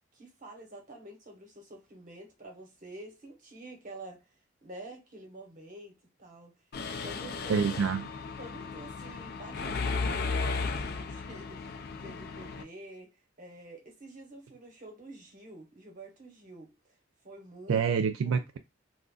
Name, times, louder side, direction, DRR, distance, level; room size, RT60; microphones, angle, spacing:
voice 1, 0.1-4.3 4.6-6.6 7.0-7.6 8.4-17.0 17.2-17.9 18.3-18.4, right 2 dB, 40° right, 0.9 m, -48 dB
Mechanisms, 6.7-12.6, left 4 dB, 50° left, 0.4 m, -35 dB
voice 2, 7.5-8.1 17.7-18.6, right 6 dB, 75° right, 0.3 m, -27 dB
2.4 x 2.1 x 3.7 m
head